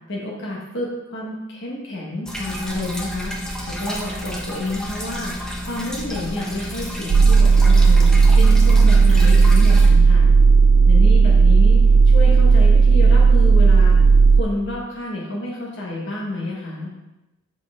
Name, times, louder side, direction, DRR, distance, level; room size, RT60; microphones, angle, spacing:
voice 1, 0.1-3.3 3.7-5.3 5.7-8.1 8.4-10.3 10.8-11.8 12.1-14.0 14.4-16.9, left 1 dB, 65° left, -4 dB, 1.4 m, -29 dB
sound 1, 2.3-9.9, equal, 5° left, 0.9 m, -30 dB
sound 2, 7.1-14.4, right 4 dB, 75° right, 0.4 m, -12 dB
6.8 x 4.8 x 3.6 m, 0.96 s
head